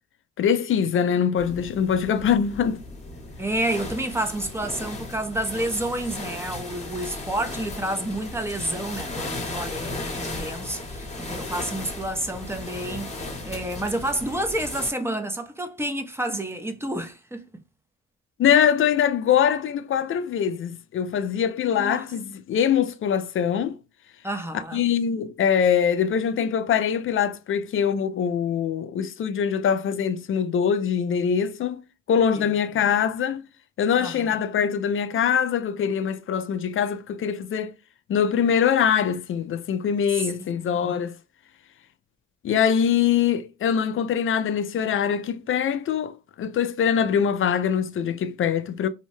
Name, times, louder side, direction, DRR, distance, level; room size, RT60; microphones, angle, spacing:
voice 1, 0.4-2.8 18.4-23.8 24.7-31.8 32.1-33.4 33.8-37.7 38.1-41.2 42.4-48.9, left 8 dB, 45° left, 0.4 m, -23 dB
sound 1, 1.4-14.9, left 2 dB, 20° left, 0.9 m, -36 dB
voice 2, 3.4-13.1 13.4-17.5 21.7-22.1 24.2-24.9 32.3-32.8 34.0-34.3 40.2-40.9, right 1 dB, 10° right, 0.5 m, -30 dB
2.7 x 2.1 x 3.1 m
cardioid pair, 90°, 30 cm